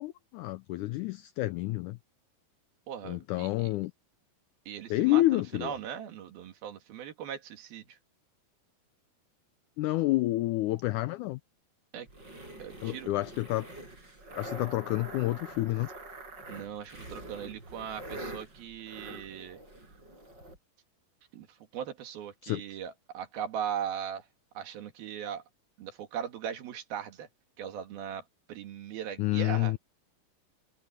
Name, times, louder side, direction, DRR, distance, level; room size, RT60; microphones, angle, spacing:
voice 1, 0.0-2.0 3.0-3.9 4.9-5.7 9.8-11.4 12.8-13.7 14.4-15.9 22.4-22.6 29.2-29.8, left 17 dB, 85° left, 1.7 m, -29 dB
voice 2, 2.9-3.7 4.7-8.0 11.9-12.1 12.6-13.1 16.5-19.6 21.3-21.5 21.7-24.3 24.6-25.4 25.8-27.3 27.6-28.2 28.5-29.7, right 9 dB, 90° right, 3.9 m, -39 dB
sound 1, 12.1-20.6, right 1 dB, 30° right, 7.6 m, -45 dB
omnidirectional pair, 4.1 m